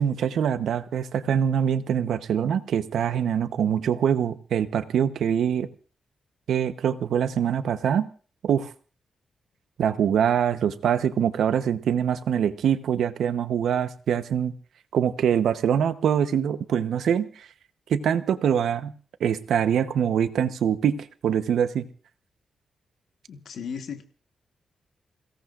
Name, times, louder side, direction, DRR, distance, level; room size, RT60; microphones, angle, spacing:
voice 1, 0.0-5.7 6.5-8.1 8.4-8.7 9.8-14.5 14.9-17.5 17.9-18.9 19.2-21.9, right 8 dB, 90° right, 11 dB, 0.9 m, -24 dB
voice 2, 23.3-24.0, left 7 dB, 75° left, 6 dB, 1.3 m, -35 dB
28.0 x 17.0 x 2.5 m, 0.38 s
wide cardioid pair, 130°, 0 cm